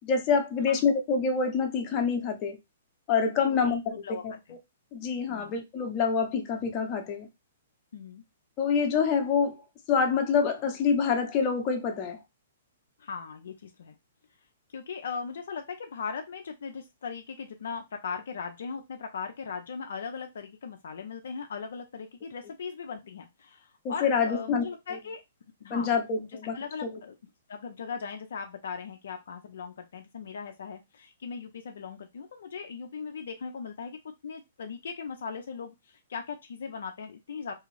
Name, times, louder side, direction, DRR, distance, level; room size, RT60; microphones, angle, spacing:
voice 1, 0.0-2.6 3.1-3.8 4.2-4.3 4.9-7.3 8.6-9.5 9.9-12.2 23.8-24.6 25.7-26.6 26.8-26.9, left 6 dB, 35° left, 0.8 m, -26 dB
voice 2, 3.4-4.2 5.3-5.5 7.9-8.2 13.0-14.0 14.7-25.2 25.6-27.2 27.5-37.5, left 5 dB, 70° left, 0.5 m, -39 dB
2.7 x 2.4 x 3.1 m
hypercardioid pair, 120°, 0 cm